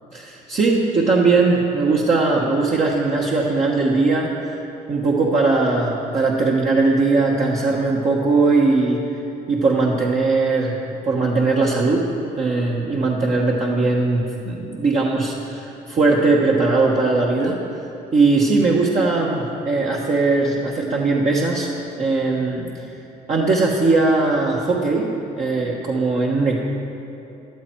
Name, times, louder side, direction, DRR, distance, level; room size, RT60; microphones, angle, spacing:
voice 1, 0.1-4.6 4.9-9.2 9.5-10.8 11.0-12.0 12.4-17.6 18.1-21.7 22.0-22.9 23.3-26.6, right 3 dB, 45° right, -3 dB, 1.3 m, -19 dB
13.5 x 12.0 x 4.6 m, 2.9 s
cardioid pair, 110°, 17 cm